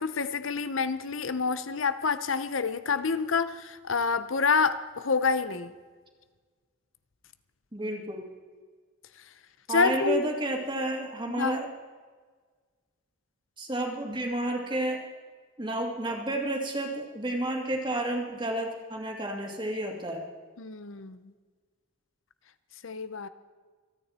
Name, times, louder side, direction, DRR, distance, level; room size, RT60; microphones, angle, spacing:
voice 1, 0.0-5.7 9.7-10.2 11.3-11.6 20.6-21.2 22.8-23.3, left 5 dB, 70° left, 12 dB, 0.8 m, -27 dB
voice 2, 7.7-8.2 9.7-11.7 13.6-15.0 15.6-20.2, right 1 dB, 20° right, 1 dB, 2.3 m, -31 dB
27.5 x 9.7 x 4.4 m, 1.5 s
head